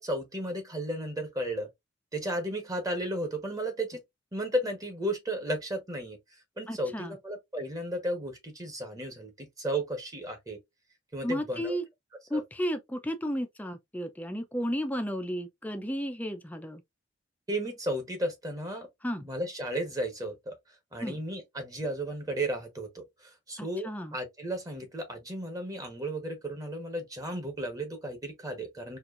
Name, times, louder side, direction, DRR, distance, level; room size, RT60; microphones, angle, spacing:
voice 1, 0.0-1.7 2.1-4.0 4.3-6.2 6.6-10.6 11.1-11.8 12.3-12.4 17.5-18.9 19.2-20.6 20.9-23.0 23.5-29.0, right 1 dB, 20° right, 1.1 m, -34 dB
voice 2, 6.7-7.2 11.2-11.8 12.3-16.8 19.0-19.3 21.0-21.2 23.6-24.2, equal, 10° left, 0.5 m, -33 dB
4.4 x 2.5 x 2.5 m
head